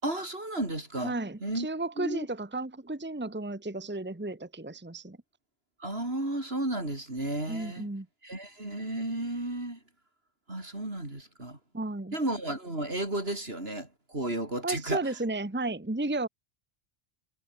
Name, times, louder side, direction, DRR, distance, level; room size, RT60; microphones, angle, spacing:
voice 1, 0.0-1.2 1.4-1.7 2.0-2.3 5.8-7.9 8.2-9.8 10.5-11.6 12.1-15.0, right 1 dB, 75° right, 6.2 m, -33 dB
voice 2, 1.0-5.2 7.5-8.1 11.7-12.1 14.6-16.3, right 2 dB, 10° right, 1.2 m, -33 dB
omnidirectional pair, 1.0 m